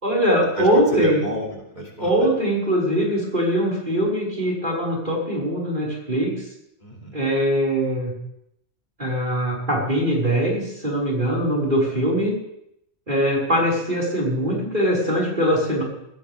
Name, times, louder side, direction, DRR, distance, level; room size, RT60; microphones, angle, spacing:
voice 1, 0.0-1.2 2.0-6.4 7.1-8.1 9.0-12.3 13.1-15.8, equal, 45° right, -4 dB, 5.7 m, -22 dB
voice 2, 0.6-2.3 6.8-7.2, equal, 40° left, -2 dB, 3.0 m, -29 dB
19.0 x 16.5 x 3.6 m, 0.80 s
omnidirectional pair, 1.2 m